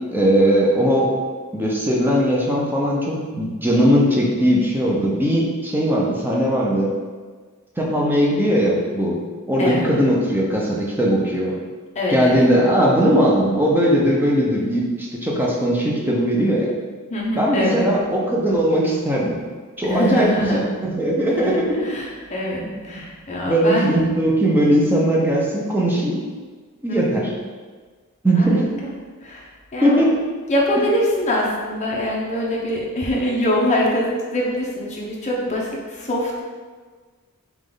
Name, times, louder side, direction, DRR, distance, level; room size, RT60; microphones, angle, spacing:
voice 1, 0.1-1.2 1.5-6.9 7.8-9.2 9.5-11.6 12.1-16.7 17.3-19.4 19.8-21.7 22.6-23.0 23.4-26.2 26.8-27.3 28.2-28.7 29.8-30.1, equal, 10° right, -3 dB, 0.7 m, -19 dB
voice 2, 9.6-9.9 11.9-12.5 17.1-17.9 19.8-20.7 21.3-24.0 26.9-27.3 28.4-28.6 29.2-29.5 29.7-30.0 30.5-36.4, left 1 dB, 30° left, -4 dB, 0.9 m, -24 dB
5.2 x 2.5 x 3.8 m, 1.5 s
head